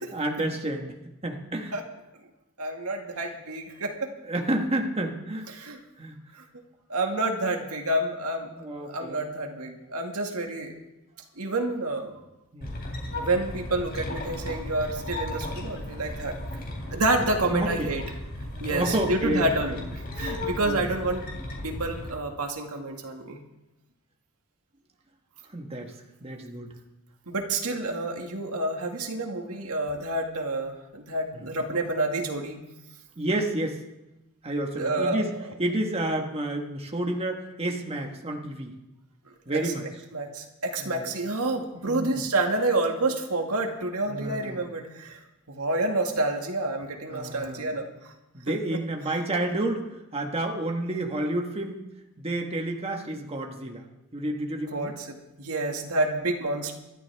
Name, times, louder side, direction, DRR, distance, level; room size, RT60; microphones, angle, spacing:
voice 1, 0.1-1.0 1.2-1.8 4.2-5.5 6.0-6.2 8.5-9.3 12.5-12.8 17.5-17.9 18.6-19.8 20.6-20.8 25.5-25.9 26.2-26.7 31.3-31.7 33.2-33.8 34.4-35.3 35.6-38.7 39.5-39.8 40.8-41.1 41.9-42.3 44.1-44.6 47.1-47.7 48.3-51.8 52.2-53.9 54.1-54.9, right 1 dB, 25° right, 2 dB, 1.5 m, -30 dB
voice 2, 2.6-4.1 5.5-5.8 6.9-8.5 8.8-10.7 11.4-12.2 13.1-16.3 16.9-18.0 18.6-21.2 21.6-23.4 27.3-32.6 34.8-35.2 39.5-39.6 40.1-45.2 45.5-47.9 48.5-48.8 54.7-56.7, right 2 dB, 75° right, 2 dB, 2.0 m, -28 dB
sound 1, 12.6-22.1, left 1 dB, 45° left, 3.2 m, -35 dB
24.5 x 12.5 x 3.5 m, 0.95 s
head